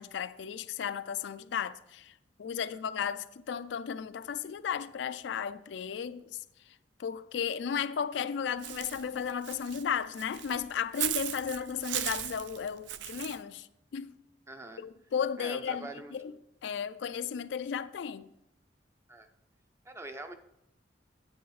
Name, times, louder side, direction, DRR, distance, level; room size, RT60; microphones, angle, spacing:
voice 1, 0.0-2.1 2.4-6.4 7.0-13.7 13.9-14.1 14.8-16.4 16.6-18.3, left 7 dB, 70° left, 0.3 m, -34 dB
Walk footsteps / Bird, 8.6-13.4, right 12 dB, 70° right, 0.4 m, -37 dB
voice 2, 14.5-14.8 15.4-16.4 19.1-19.3 19.9-20.3, right 2 dB, 15° right, 0.5 m, -44 dB
9.3 x 7.7 x 3.1 m
head